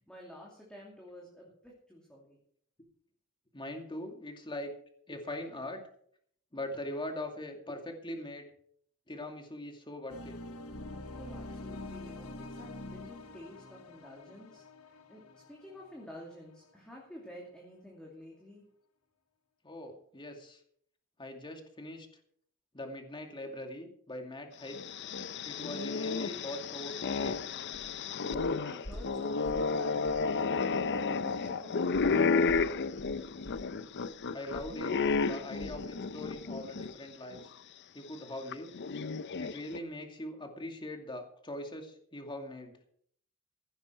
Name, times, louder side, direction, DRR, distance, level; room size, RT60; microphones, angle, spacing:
voice 1, 0.0-2.4 11.2-18.7 28.3-30.2 30.8-32.3, left 1 dB, 5° left, -3 dB, 2.7 m, -50 dB
voice 2, 3.5-4.7 5.1-5.9 6.5-8.5 9.1-10.4 19.6-20.6 21.2-22.1 22.7-25.0 25.4-27.4 34.3-34.9 35.2-37.4 37.9-38.7 39.4-42.7, left 1 dB, 25° left, 3 dB, 2.4 m, -41 dB
sound 1, 10.1-16.9, left 2 dB, 90° left, 1.3 m, -46 dB
sound 2, 24.7-36.9 37.3-37.4 38.5-39.8, left 4 dB, 55° left, 0.6 m, -32 dB
sound 3, 27.2-27.3 27.7-28.0 28.3-29.8 30.0-30.3 30.7-30.8 31.9-35.9 36.2-36.5 36.8-36.9, equal, 70° left, 5.4 m, -48 dB
15.5 x 11.5 x 4.6 m, 0.62 s
head